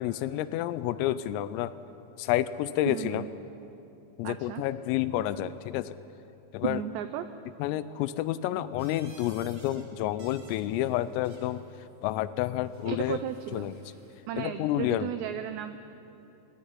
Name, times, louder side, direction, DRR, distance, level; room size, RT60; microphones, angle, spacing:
voice 1, 0.0-1.7 2.2-3.2 4.2-6.0 6.5-6.8 7.6-11.6 12.0-13.2 13.5-13.7 14.3-15.1, left 13 dB, 90° left, 15 dB, 3.4 m, -29 dB
voice 2, 2.9-3.3 4.2-4.6 6.6-7.3 12.8-13.7 14.3-15.8, right 11 dB, 90° right, 9 dB, 2.5 m, -34 dB
sound 1, 8.8-9.8 10.1-11.6 12.7-14.2, right 3 dB, 40° right, 1.5 m, -56 dB
18.5 x 17.5 x 9.8 m, 3.0 s
omnidirectional pair, 5.8 m